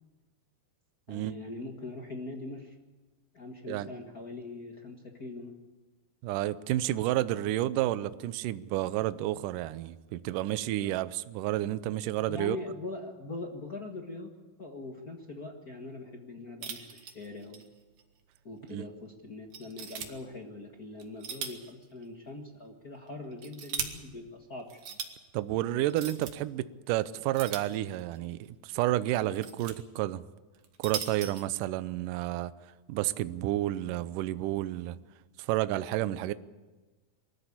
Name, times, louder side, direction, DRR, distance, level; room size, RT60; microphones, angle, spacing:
voice 1, 1.1-2.7 3.3-5.5 10.8-11.0 12.3-14.3 14.6-17.7 18.4-24.8, left 2 dB, 65° left, 2 dB, 0.9 m, -42 dB
voice 2, 6.2-12.6 18.7-18.9 25.3-30.2 30.8-32.5 32.9-35.0 35.4-36.3, right 14 dB, 80° right, 14 dB, 2.0 m, -30 dB
sound 1, 16.6-17.7 18.0-18.1 18.7-18.8 19.5-20.1 21.0-21.7 22.0-22.1 23.1-23.9 24.7-25.1 25.9-26.3 27.3-28.2 29.1-29.7 30.5-31.4, right 8 dB, 60° right, 2.9 m, -38 dB
23.5 x 14.0 x 8.5 m, 1.2 s
omnidirectional pair, 4.6 m